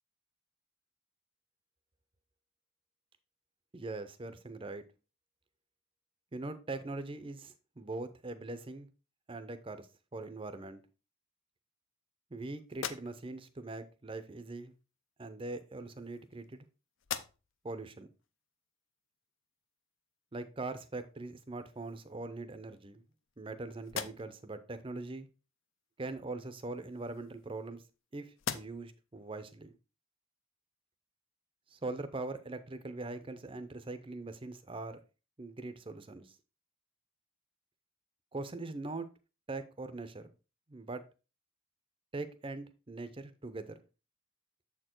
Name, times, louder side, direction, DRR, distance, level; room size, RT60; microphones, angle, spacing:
voice 1, 3.7-4.8 6.3-8.9 9.3-9.9 10.1-10.8 12.3-14.7 15.2-16.6 17.6-18.1 20.3-23.0 23.4-25.3 26.0-27.8 28.1-29.7 31.7-35.0 35.4-36.4 38.3-39.1 39.5-40.2 40.7-41.0 42.1-43.7, right 2 dB, 25° right, 11 dB, 0.6 m, -42 dB
sound 1, 12.7-13.5 14.7-14.8 15.8-16.6 17.0-17.7 18.2-18.3 21.0-21.1 21.5-22.2 22.8-23.5 23.8-24.5 26.5-28.0 28.4-29.0, left 8 dB, 60° left, 0.5 m, -43 dB
7.2 x 4.4 x 4.4 m, 0.32 s
head